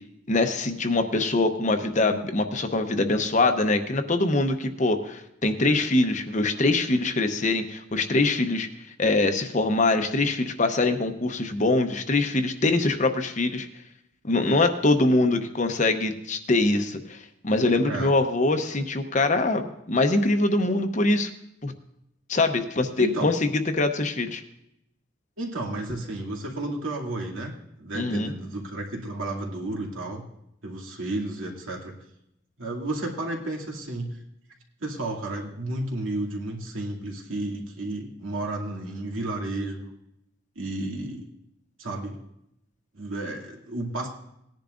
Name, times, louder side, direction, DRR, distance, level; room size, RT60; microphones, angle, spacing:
voice 1, 0.3-8.7 9.0-13.7 14.2-21.3 21.6-21.7 22.3-23.5 23.7-24.4 27.9-28.3, left 2 dB, 35° left, 7 dB, 0.8 m, -23 dB
voice 2, 23.0-23.3 25.4-27.5 27.8-30.2 30.6-31.9 32.6-34.2 34.8-39.9 40.6-41.3 41.8-42.2 42.9-44.1, right 2 dB, 85° right, -1 dB, 2.4 m, -32 dB
18.5 x 10.5 x 2.5 m, 0.80 s
head